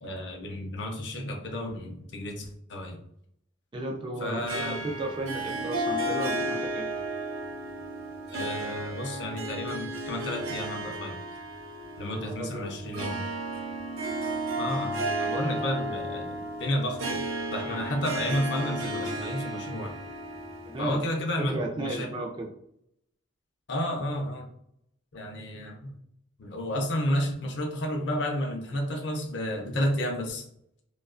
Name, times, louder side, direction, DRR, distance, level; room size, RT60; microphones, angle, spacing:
voice 1, 0.0-3.0 4.2-4.8 8.3-11.2 12.0-13.2 14.6-17.2 17.5-19.9 20.8-22.1 23.7-24.5 25.1-25.9 26.4-30.5, left 1 dB, 55° left, 2 dB, 0.5 m, -31 dB
voice 2, 3.7-6.9 12.1-12.7 20.7-21.0 21.4-22.5, right 1 dB, 25° right, 0 dB, 0.3 m, -34 dB
Harp, 4.5-21.2, right 1 dB, 85° right, 0.5 m, -33 dB
2.6 x 2.3 x 2.4 m, 0.74 s
head